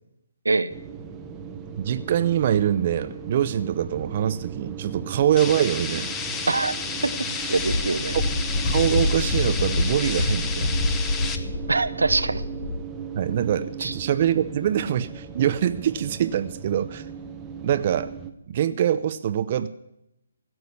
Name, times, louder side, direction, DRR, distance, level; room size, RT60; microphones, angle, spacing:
sound 1, 0.7-18.3, right 6 dB, 15° right, 1.1 m, -38 dB
voice 1, 1.8-6.1 8.6-10.7 13.1-17.0 17.6-18.1 18.5-19.7, right 10 dB, 40° right, 11 dB, 0.6 m, -24 dB
sound 2, 5.4-11.4, left 5 dB, 15° left, 0.9 m, -32 dB
Wind, 7.5-12.8, left 2 dB, 45° left, 1.5 m, -26 dB
voice 2, 7.5-8.2 11.7-12.4 13.8-13.9, right 3 dB, 85° right, 12 dB, 0.8 m, -23 dB
16.0 x 6.3 x 9.9 m, 0.85 s
figure-of-eight pair, 145°, 0 cm